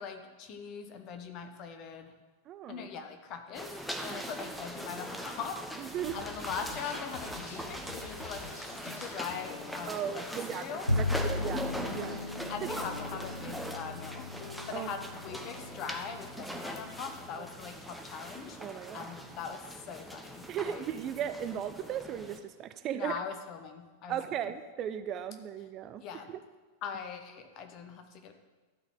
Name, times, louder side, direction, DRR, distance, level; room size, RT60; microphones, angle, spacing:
voice 1, 0.0-2.1 2.7-10.2 10.5-10.9 12.5-14.3 14.7-18.6 18.9-21.0 22.9-24.2 26.0-26.3 26.8-28.3, left 6 dB, 40° left, 6 dB, 1.0 m, -41 dB
voice 2, 2.5-2.9 4.1-4.3 5.8-6.2 9.9-12.2 14.7-14.9 18.6-19.1 20.5-23.2 24.1-26.0 26.3-26.4, right 9 dB, 35° right, 13 dB, 0.4 m, -37 dB
sound 1, 3.5-22.4, equal, ahead, 0.9 m, -41 dB
sound 2, 5.9-15.7, left 4 dB, 60° left, 1.3 m, -49 dB
Bowed string instrument, 10.9-17.3, left 2 dB, 90° left, 0.4 m, -36 dB
12.0 x 4.2 x 7.2 m, 1.3 s
figure-of-eight pair, 90°, 0 cm